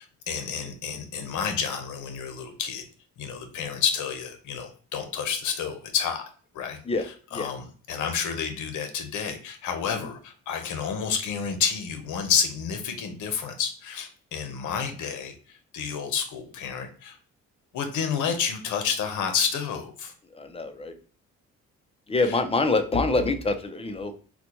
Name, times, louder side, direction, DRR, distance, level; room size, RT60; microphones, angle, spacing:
voice 1, 0.3-2.8 3.2-6.2 6.5-17.2 17.7-20.1 22.2-22.4, left 7 dB, 80° left, 6 dB, 0.8 m, -30 dB
voice 2, 20.3-20.9 22.1-24.1, left 3 dB, 20° left, 8 dB, 0.5 m, -25 dB
4.0 x 2.2 x 2.9 m, 0.42 s
cardioid pair, 90°, 30 cm